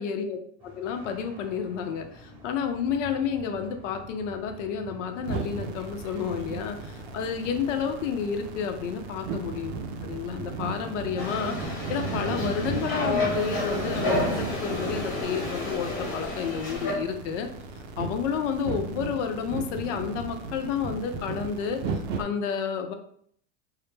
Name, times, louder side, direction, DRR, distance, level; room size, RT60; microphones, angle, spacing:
voice 1, 0.0-9.7 10.0-17.5 18.0-21.8 22.2-22.9, left 7 dB, 75° left, 6 dB, 0.6 m, -30 dB
sound 1, 0.6-16.2, right 1 dB, 15° right, 0.8 m, -48 dB
sound 2, 5.2-22.2, right 4 dB, 60° right, 0.5 m, -36 dB
sound 3, 11.2-16.9, left 2 dB, 40° left, 1.1 m, -30 dB
2.1 x 2.0 x 3.1 m, 0.64 s
supercardioid pair, 145°, 37 cm